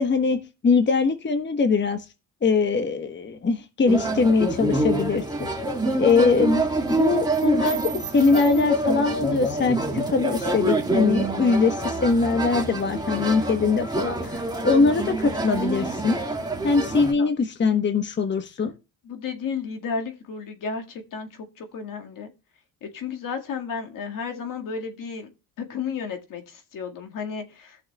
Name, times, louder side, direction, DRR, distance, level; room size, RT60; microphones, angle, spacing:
voice 1, 0.0-2.0 2.4-5.5 6.0-6.6 7.0-7.8 8.1-16.2 16.6-18.7, left 4 dB, 30° left, 1.1 m, -22 dB
sound 1, 3.9-17.1, right 2 dB, 10° right, 2.0 m, -26 dB
voice 2, 19.0-22.3 22.8-25.3 25.6-27.8, left 5 dB, 60° left, 1.9 m, -33 dB
17.5 x 6.5 x 2.3 m
cardioid pair, 90°, 36 cm